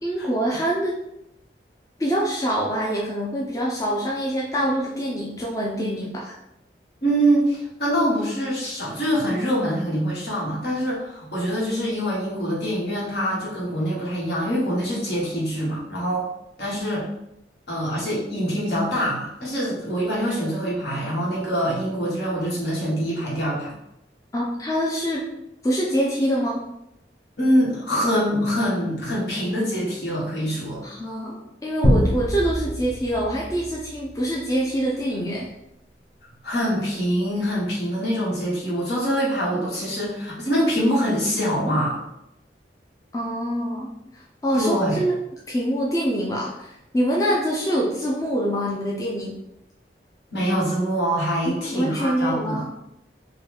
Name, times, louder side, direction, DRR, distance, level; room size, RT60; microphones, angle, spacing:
voice 1, 0.0-0.9 2.0-6.4 24.3-25.2 25.6-26.6 30.8-35.5 43.1-45.1 45.5-49.4 51.4-52.7, equal, 20° left, -3 dB, 0.4 m, -25 dB
voice 2, 7.0-16.3 16.6-17.1 17.7-23.7 27.4-30.8 36.4-42.0 44.5-45.0 50.3-52.6, equal, 70° left, -5 dB, 1.3 m, -24 dB
sound 1, 31.8-34.7, equal, 35° left, 0.8 m, -25 dB
3.9 x 2.2 x 3.4 m, 0.83 s
head